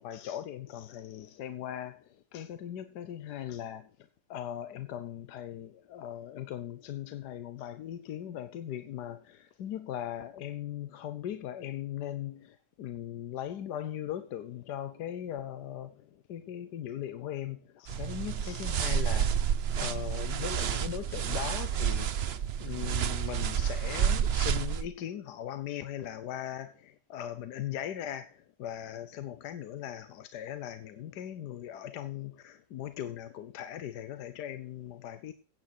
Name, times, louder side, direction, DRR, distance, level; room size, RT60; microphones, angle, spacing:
voice 1, 0.0-3.9 4.3-35.3, left 11 dB, 85° left, 1.4 m, -39 dB
sound 1, 17.9-24.8, right 8 dB, 55° right, 0.8 m, -30 dB
16.5 x 9.0 x 4.4 m
omnidirectional pair, 1.7 m